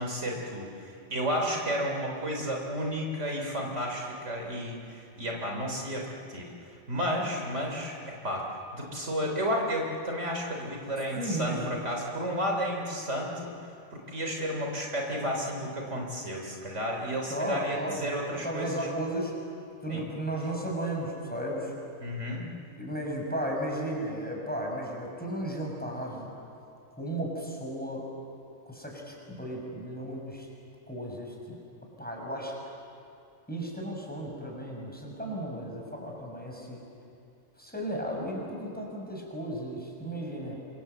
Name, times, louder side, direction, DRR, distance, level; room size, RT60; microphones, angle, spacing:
voice 1, 0.0-8.0 8.2-8.5 8.7-13.6 13.9-18.9 19.9-20.0 22.0-22.5, equal, 65° right, 0 dB, 3.8 m, -32 dB
voice 2, 11.2-11.8 17.3-19.3 19.8-21.7 22.8-26.3 27.0-28.1 28.7-30.5 30.9-31.6 32.0-32.5 33.5-36.8 37.6-40.6, right 1 dB, 5° left, -1 dB, 5.9 m, -34 dB
27.5 x 25.5 x 8.1 m, 2.5 s
omnidirectional pair, 1.3 m